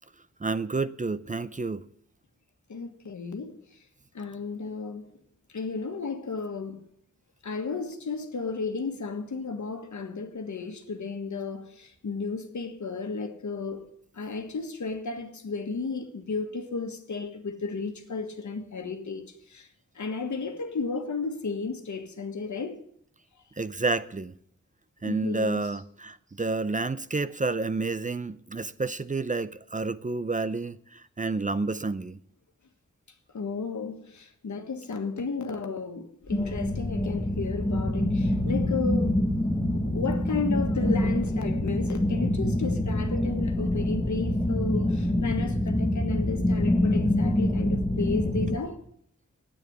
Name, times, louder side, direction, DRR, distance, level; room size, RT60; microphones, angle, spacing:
voice 1, 0.4-1.8 23.6-24.3 25.0-30.8 31.2-32.2, right 3 dB, 25° right, 0.6 m, -29 dB
voice 2, 2.7-3.6 4.1-5.1 5.5-6.8 7.4-13.8 14.1-19.7 19.9-22.8 25.0-25.7 33.3-39.2 39.7-48.8, left 4 dB, 80° left, 1.5 m, -33 dB
sound 1, 36.3-48.6, left 1 dB, 15° left, 1.3 m, -26 dB
9.2 x 8.8 x 9.6 m
wide cardioid pair, 70°, 29 cm